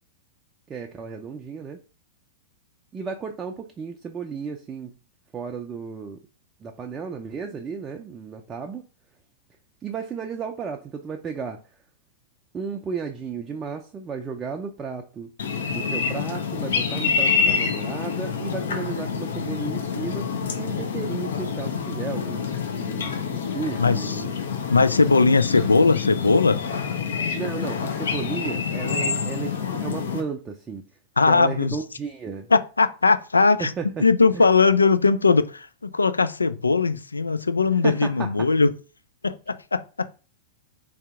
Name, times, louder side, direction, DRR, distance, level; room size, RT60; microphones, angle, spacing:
voice 1, 0.7-1.8 2.9-4.9 5.3-6.2 6.6-8.9 9.8-11.8 12.5-15.3 15.7-20.3 20.6-22.5 22.8-24.3 27.3-30.8 31.3-32.5 33.6-34.1 34.3-34.5 37.8-38.5, right 5 dB, 20° right, 0.4 m, -34 dB
sound 1, 15.4-30.2, left 6 dB, 70° left, 0.7 m, -27 dB
voice 2, 23.8-24.2 24.7-26.6 31.2-31.8 32.5-33.7 34.0-38.7 39.2-40.1, left 4 dB, 85° left, 0.3 m, -19 dB
3.3 x 2.8 x 3.5 m
figure-of-eight pair, 100°, 0 cm